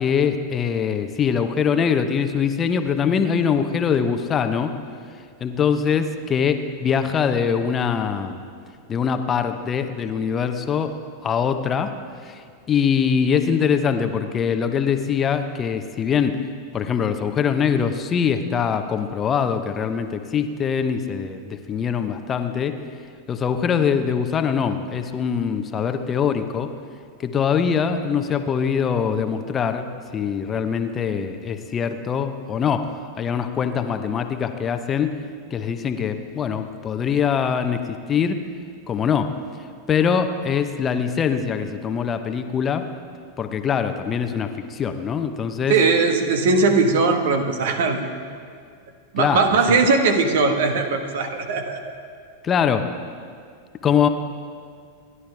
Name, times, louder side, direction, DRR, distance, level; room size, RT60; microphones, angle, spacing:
voice 1, 0.0-4.7 5.4-8.4 8.9-10.9 11.2-11.9 12.2-16.4 16.7-22.8 23.3-26.7 27.2-29.9 30.1-32.9 33.2-35.1 35.5-38.4 38.9-39.3 39.9-42.9 43.4-45.7 49.2-49.8 52.4-52.8 53.8-54.1, left 7 dB, 25° left, 8 dB, 0.9 m, -23 dB
voice 2, 45.7-48.1 49.1-51.8, right 4 dB, 55° right, 6 dB, 1.4 m, -19 dB
29.0 x 11.0 x 3.5 m, 2.2 s
figure-of-eight pair, 90°, 0 cm